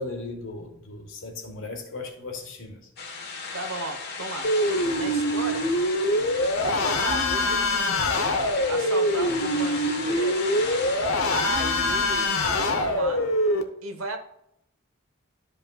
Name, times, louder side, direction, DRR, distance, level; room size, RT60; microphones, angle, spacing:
voice 1, 0.0-2.9 11.8-11.9, left 3 dB, 70° left, 3 dB, 1.5 m, -37 dB
sound 1, 3.0-12.5, left 4 dB, 55° left, 1.2 m, -36 dB
voice 2, 3.5-4.5 5.0-5.7 6.6-8.1 8.6-10.4 11.3-13.2 13.8-14.2, right 3 dB, 85° right, 6 dB, 1.1 m, -35 dB
sound 2, 4.4-13.6, left 1 dB, 90° left, 0.8 m, -24 dB
12.0 x 5.3 x 2.3 m, 0.78 s
head